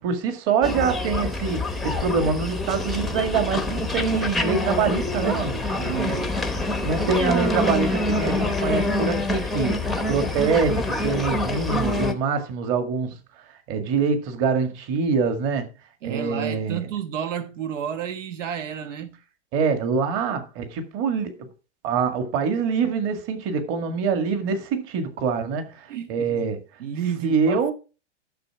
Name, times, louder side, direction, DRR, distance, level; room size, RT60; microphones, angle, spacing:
voice 1, 0.0-5.6 6.8-9.8 10.1-13.2 13.7-15.7 16.0-16.9 19.5-21.5 21.8-26.6 27.2-27.7, right 5 dB, 35° right, 1.9 m, -25 dB
sound 1, 0.6-12.1, left 2 dB, ahead, 0.7 m, -26 dB
voice 2, 5.7-6.3 16.0-19.2 25.9-26.5 26.8-27.7, right 9 dB, 80° right, 1.4 m, -31 dB
11.5 x 6.7 x 4.7 m
hypercardioid pair, 145°, 37 cm